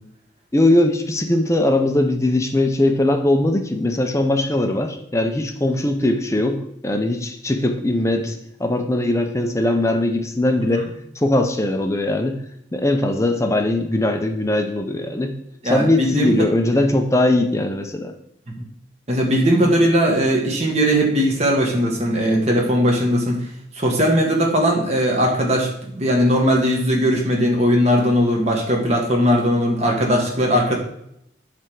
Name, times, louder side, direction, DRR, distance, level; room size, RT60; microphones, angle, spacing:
voice 1, 0.5-10.8 11.2-12.4 12.7-15.3 15.6-18.1, left 1 dB, 15° left, 5 dB, 0.5 m, -20 dB
voice 2, 15.6-16.3 18.6-18.7 19.1-23.4 23.7-30.7, equal, 35° right, 0 dB, 1.5 m, -19 dB
7.8 x 3.4 x 6.1 m, 0.75 s
head